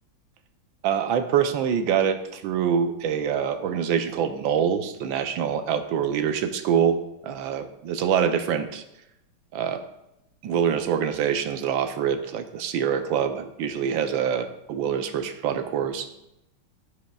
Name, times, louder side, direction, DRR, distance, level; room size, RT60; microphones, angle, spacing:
voice 1, 0.8-8.8 9.5-9.8 10.4-16.1, right 8 dB, 75° right, 7 dB, 1.4 m, -25 dB
13.5 x 4.9 x 2.3 m, 0.87 s
omnidirectional pair, 2.2 m